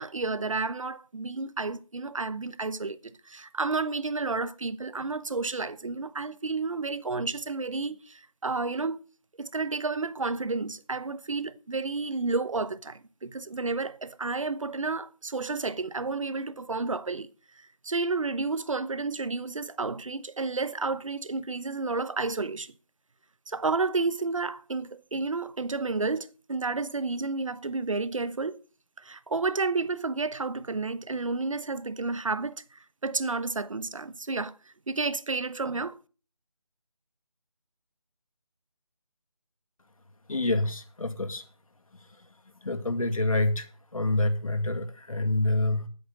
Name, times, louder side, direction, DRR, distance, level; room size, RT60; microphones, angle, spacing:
voice 1, 0.0-9.0 9.4-17.3 17.5-22.7 23.5-28.6 29.0-34.6 34.9-36.0, right 3 dB, 65° right, 1.0 m, -31 dB
voice 2, 40.3-41.5 41.9-42.3 42.5-45.9, left 2 dB, 70° left, 2.1 m, -27 dB
20.0 x 8.0 x 3.9 m
figure-of-eight pair, 165°, 18 cm